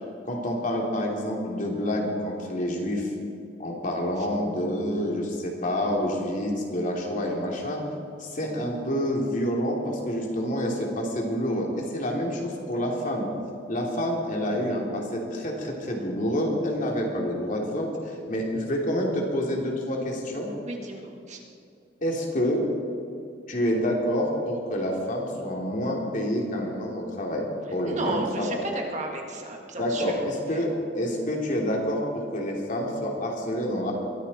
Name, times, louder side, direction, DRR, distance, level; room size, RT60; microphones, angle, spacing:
voice 1, 0.3-3.1 3.6-7.8 8.2-13.3 13.7-20.5 22.0-22.6 23.5-28.6 29.8-33.9, equal, 45° left, -1 dB, 3.0 m, -28 dB
voice 2, 20.6-21.4 27.8-30.7, right 2 dB, 40° right, 1 dB, 1.8 m, -34 dB
22.0 x 14.5 x 4.3 m, 2.5 s
head